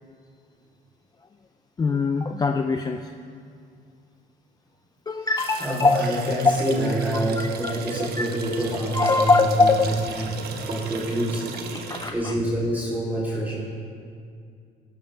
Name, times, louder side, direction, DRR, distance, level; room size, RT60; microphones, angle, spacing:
voice 1, 1.8-3.1 5.1-6.0 7.6-7.7 8.2-8.3 8.9-9.9 11.9-12.3, left 4 dB, 25° left, 6 dB, 0.5 m, -22 dB
sound 1, 5.4-12.1, right 5 dB, 65° right, 1.3 m, -36 dB
voice 2, 5.6-9.3 9.6-11.5 12.1-13.6, right 1 dB, 10° right, -9 dB, 3.3 m, -27 dB
17.5 x 12.0 x 3.4 m, 2.3 s
cardioid pair, 110°, 17 cm